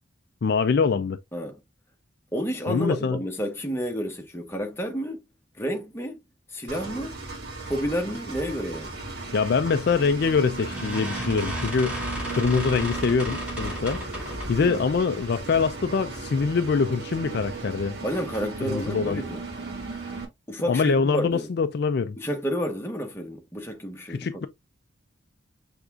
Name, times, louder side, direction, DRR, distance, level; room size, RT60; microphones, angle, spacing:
voice 1, 0.4-1.2 2.7-3.2 9.3-12.0 12.3-14.0 14.5-18.0 18.6-19.2 20.7-22.2 24.1-24.5, left 5 dB, 55° left, 0.4 m, -24 dB
voice 2, 2.3-5.2 5.6-6.2 6.5-7.2 7.7-9.0 14.6-14.8 18.0-19.4 20.5-21.5 22.2-24.3, equal, 10° left, 1.0 m, -30 dB
Engine, 6.7-20.2, right 3 dB, 55° right, 1.8 m, -36 dB
sound 1, 9.8-10.1 10.6-14.7, equal, 5° right, 2.3 m, -34 dB
6.4 x 3.5 x 2.4 m
head